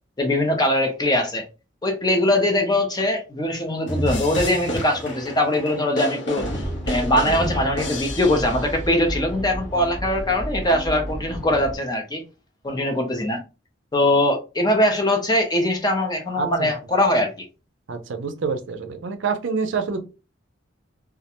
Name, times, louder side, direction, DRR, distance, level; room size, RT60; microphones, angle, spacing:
voice 1, 0.2-1.4 1.8-6.5 6.9-12.2 12.6-13.4 13.9-17.5, left 1 dB, 20° left, 0.5 m, -21 dB
sound 1, 3.9-8.9, equal, 70° left, 0.8 m, -30 dB
sound 2, 6.3-11.8, equal, 5° left, 0.9 m, -32 dB
voice 2, 16.4-16.7 17.9-20.0, right 5 dB, 70° right, 0.5 m, -27 dB
2.3 x 2.1 x 2.8 m
head